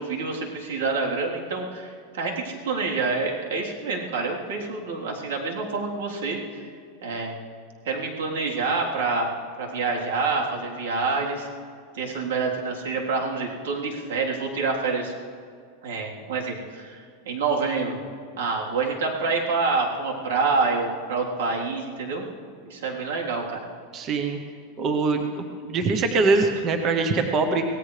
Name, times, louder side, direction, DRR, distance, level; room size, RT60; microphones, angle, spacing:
voice 1, 0.0-6.7 7.0-7.3 7.9-9.3 9.6-11.5 11.9-15.1 15.8-18.0 18.4-22.3 22.6-23.7, right 4 dB, 85° right, -2 dB, 3.5 m, -27 dB
voice 2, 23.9-24.4 24.8-27.6, right 3 dB, 25° right, 5 dB, 0.9 m, -23 dB
25.0 x 17.5 x 3.3 m, 2.2 s
supercardioid pair, 180°, 0 cm